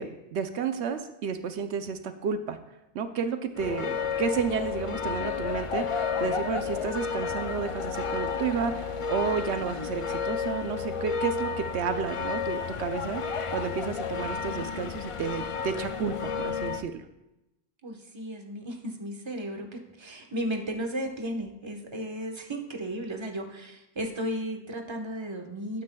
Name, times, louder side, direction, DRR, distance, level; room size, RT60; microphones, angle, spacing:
voice 1, 0.0-2.6 2.9-17.0, right 6 dB, 80° right, 8 dB, 0.9 m, -31 dB
sound 1, 3.6-16.8, left 6 dB, 55° left, 0.3 m, -32 dB
voice 2, 17.8-25.8, right 1 dB, 25° right, 3 dB, 1.1 m, -34 dB
19.5 x 9.5 x 2.3 m, 0.92 s
omnidirectional pair, 1.1 m